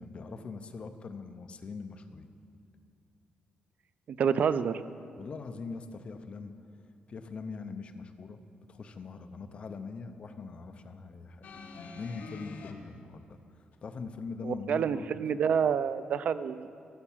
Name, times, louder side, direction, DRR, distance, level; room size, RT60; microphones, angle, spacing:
voice 1, 0.0-2.3 5.2-6.5 7.1-8.4 8.7-11.4 12.0-13.4 13.8-15.1, left 4 dB, 40° left, 8 dB, 0.7 m, -42 dB
voice 2, 4.1-4.8 14.4-16.7, right 7 dB, 55° right, 14 dB, 0.4 m, -28 dB
sound 1, 11.4-12.7 13.7-13.8, left 3 dB, 65° left, 1.1 m, -45 dB
14.5 x 7.0 x 7.2 m, 2.7 s
wide cardioid pair, 170°, 3 cm